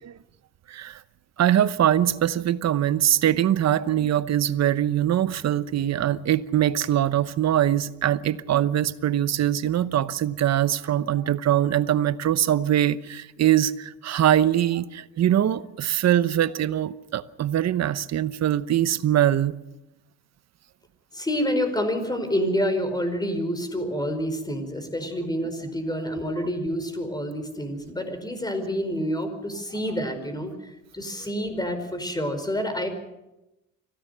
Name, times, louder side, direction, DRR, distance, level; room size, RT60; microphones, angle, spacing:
voice 1, 0.7-1.0 1.4-19.5, right 11 dB, 60° right, 0.9 m, -22 dB
voice 2, 21.1-32.9, equal, 15° left, 4.9 m, -28 dB
25.5 x 16.5 x 6.8 m
cardioid pair, 90°, 30 cm